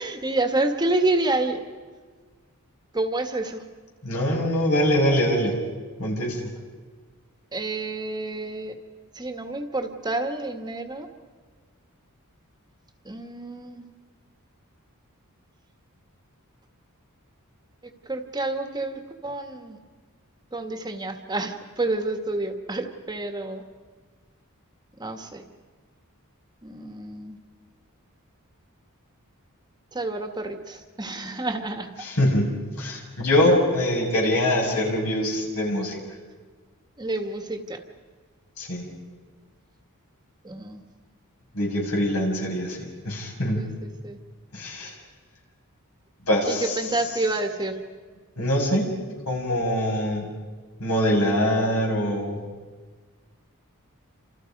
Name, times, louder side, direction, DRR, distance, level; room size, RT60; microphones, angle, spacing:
voice 1, 0.0-1.6 2.9-3.6 7.5-8.7 9.1-11.1 13.0-13.9 17.8-19.8 20.5-23.6 25.0-25.4 26.6-27.4 29.9-31.9 34.7-34.8 37.0-37.8 40.4-40.8 43.5-44.2 46.5-47.8, right 2 dB, 20° right, 6 dB, 1.6 m, -29 dB
voice 2, 4.0-5.5 6.0-6.4 32.0-32.5 32.8-36.0 38.6-38.9 41.5-43.6 44.5-44.9 46.3-46.7 48.4-48.9 49.3-50.3 50.8-52.4, left 1 dB, 70° left, -1 dB, 7.4 m, -23 dB
29.5 x 27.5 x 5.4 m, 1.5 s
head